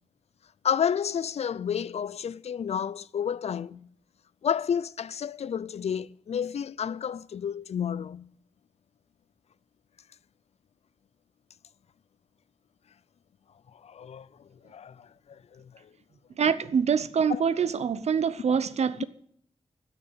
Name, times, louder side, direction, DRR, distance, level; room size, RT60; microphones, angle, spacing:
voice 1, 0.6-3.9 4.4-8.3 13.8-15.9 17.3-17.4, left 8 dB, 70° left, 0.5 m, -31 dB
voice 2, 16.4-19.0, right 6 dB, 75° right, 0.7 m, -25 dB
12.5 x 6.7 x 9.2 m
wide cardioid pair, 85°, 11 cm